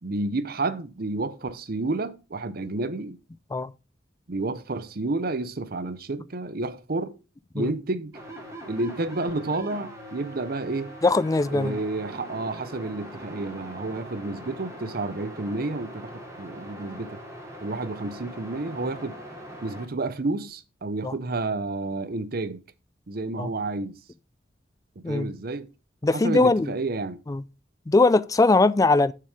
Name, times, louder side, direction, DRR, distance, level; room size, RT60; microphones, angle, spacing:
voice 1, 0.0-3.2 4.3-7.2 7.5-8.2 8.7-10.9 11.5-17.2 17.6-19.2 19.6-22.6 23.1-24.0 25.0-25.7 26.1-27.2, right 2 dB, 55° right, 0.7 m, -30 dB
sound 1, 8.1-19.9, equal, 20° right, 2.9 m, -41 dB
voice 2, 11.0-11.8 21.0-21.1 23.4-23.5 25.0-25.3 26.0-26.7 27.3-27.4 27.9-29.1, left 3 dB, 20° left, 0.4 m, -20 dB
7.0 x 6.7 x 4.8 m
head